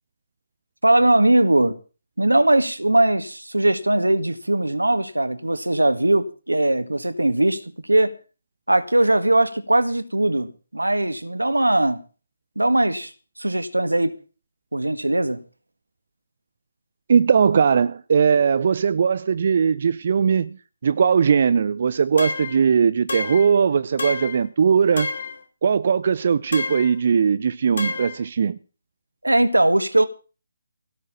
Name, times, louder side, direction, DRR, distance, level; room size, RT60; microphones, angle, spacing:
voice 1, 0.8-1.8 2.2-7.6 7.9-8.1 8.7-12.0 12.6-13.1 13.4-14.1 14.7-15.4 29.2-30.1, right 1 dB, 80° right, 1.8 m, -20 dB
voice 2, 17.1-20.6 20.8-25.1 25.6-28.6, right 6 dB, 45° right, 0.6 m, -19 dB
sound 1, 22.2-22.6 23.1-23.5 24.0-24.4 25.0-25.4 26.5-27.0 27.8-28.2, left 3 dB, 55° left, 3.3 m, -29 dB
17.0 x 6.5 x 8.7 m
figure-of-eight pair, 145°, 0 cm